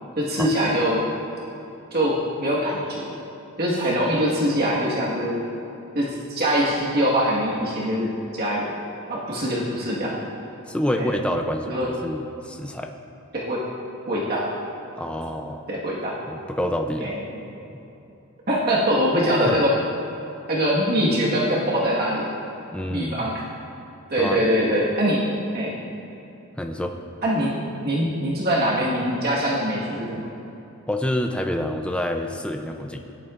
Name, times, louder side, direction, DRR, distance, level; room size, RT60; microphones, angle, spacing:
voice 1, 0.2-1.0 1.9-3.0 3.6-5.4 5.9-8.1 8.3-8.6 9.1-10.3 11.0-11.1 11.6-11.9 13.3-13.6 14.1-14.5 15.7-16.2 17.0-17.4 18.5-19.7 20.5-22.3 22.9-23.4 24.1-25.2 25.5-25.8 27.2-27.6 27.8-30.2, equal, 45° right, -5 dB, 1.5 m, -23 dB
voice 2, 10.7-12.9 15.0-15.6 16.3-17.1 19.4-19.6 22.7-23.2 24.2-24.4 26.6-26.9 30.9-33.0, left 1 dB, 5° left, 4 dB, 0.4 m, -27 dB
17.0 x 11.0 x 2.5 m, 2.9 s
head